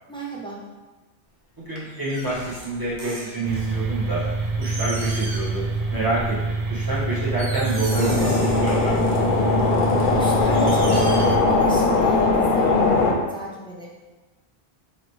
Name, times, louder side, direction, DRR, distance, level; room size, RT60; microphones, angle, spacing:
voice 1, 0.1-0.6 10.1-13.9, right 2 dB, 5° left, -5 dB, 0.4 m, -34 dB
voice 2, 1.6-4.2 4.6-5.6 5.9-9.0, right 2 dB, 20° right, -9 dB, 1.2 m, -27 dB
sound 1, 1.8-3.7 4.2-4.3 4.6-5.6 6.0-6.3 6.8-6.9 7.3-9.2 9.7-11.8 12.0-12.1, right 2 dB, 90° right, 1.1 m, -37 dB
sound 2, 3.4-11.4, right 3 dB, 50° right, 0.5 m, -26 dB
sound 3, 7.9-13.1, left 3 dB, 60° left, 0.8 m, -20 dB
4.0 x 2.9 x 3.1 m, 1.2 s
omnidirectional pair, 1.0 m